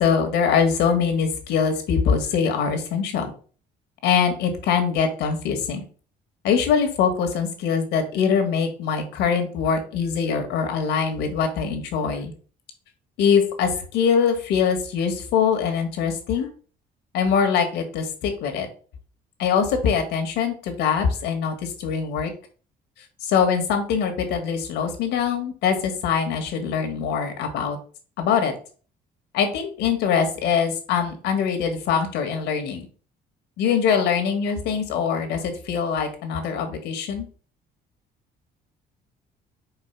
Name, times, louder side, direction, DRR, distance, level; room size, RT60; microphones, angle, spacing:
voice 1, 0.0-3.3 4.0-5.8 6.4-12.3 13.2-16.5 17.1-18.7 19.4-22.3 23.2-27.8 28.2-28.6 29.3-32.9 33.6-37.3, left 6 dB, 85° left, 6 dB, 1.7 m, -23 dB
4.8 x 4.4 x 5.9 m, 0.41 s
cardioid pair, 110°, 17 cm